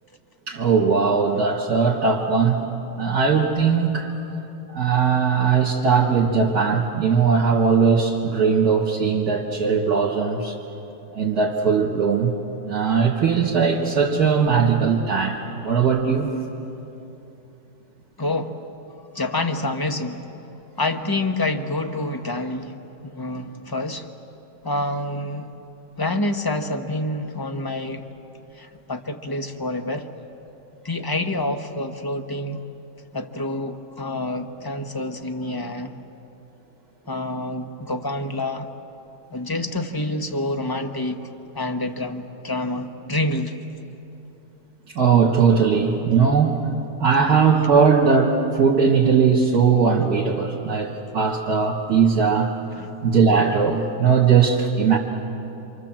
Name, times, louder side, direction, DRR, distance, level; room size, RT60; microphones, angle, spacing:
voice 1, 0.5-2.7 3.0-4.1 4.7-10.5 11.1-12.3 12.7-16.3 44.9-46.6 47.0-52.5 53.0-55.0, right 6 dB, 55° right, -3 dB, 2.5 m, -19 dB
voice 2, 18.2-18.6 19.1-20.3 20.8-22.7 23.0-24.1 24.6-25.5 26.0-28.0 28.6-30.1 30.8-32.6 33.1-36.0 37.1-38.7 39.3-41.2 41.5-43.5 52.8-52.9, left 2 dB, 15° left, 5 dB, 0.9 m, -27 dB
27.5 x 27.0 x 7.6 m, 2.9 s
omnidirectional pair, 1.9 m